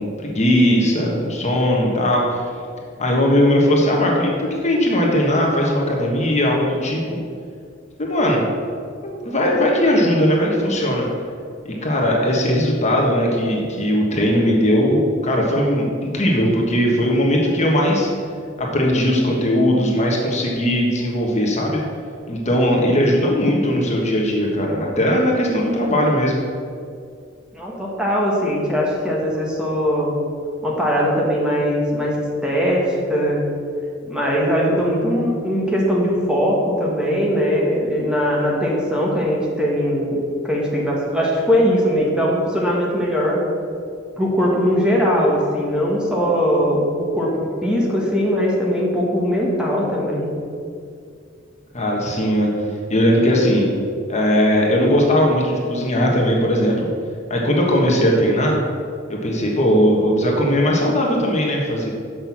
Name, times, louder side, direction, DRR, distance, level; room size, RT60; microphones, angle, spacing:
voice 1, 0.0-2.4 3.0-4.3 4.6-7.0 8.0-8.4 9.0-11.1 11.6-18.1 18.6-21.8 22.3-26.4 51.7-52.5 52.9-53.6 54.1-56.9 57.3-58.6 59.1-61.9, equal, 35° left, -2 dB, 1.4 m, -18 dB
voice 2, 27.5-30.1 30.6-32.2 32.4-33.4 34.0-40.2 40.4-43.4 44.2-47.4 47.6-50.3, equal, 5° right, -4 dB, 1.4 m, -20 dB
6.6 x 6.1 x 7.3 m, 2.3 s
head